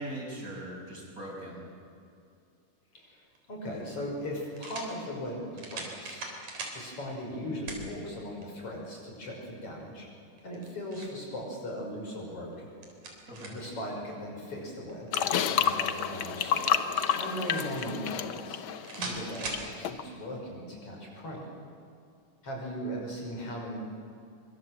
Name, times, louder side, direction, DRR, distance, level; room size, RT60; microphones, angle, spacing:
voice 1, 0.0-1.6 13.3-13.6 19.0-19.1, right 1 dB, 25° right, -2 dB, 6.8 m, -40 dB
voice 2, 2.9-6.3 6.7-10.1 10.4-12.7 13.5-16.7 17.1-18.6 19.0-21.5 22.4-23.8, equal, 45° left, -1 dB, 6.6 m, -38 dB
sound 1, 3.3-3.4 4.6-4.9 5.6-6.8 7.7-7.9 8.4-8.5 10.4-11.2 12.5-13.7 14.9-15.9 17.0-17.9 18.8-19.7, right 3 dB, 70° right, 5.1 m, -40 dB
sound 2, 15.1-19.6 19.8-20.0, left 8 dB, 85° left, 1.1 m, -29 dB
24.5 x 24.0 x 7.9 m, 2.5 s
omnidirectional pair, 3.6 m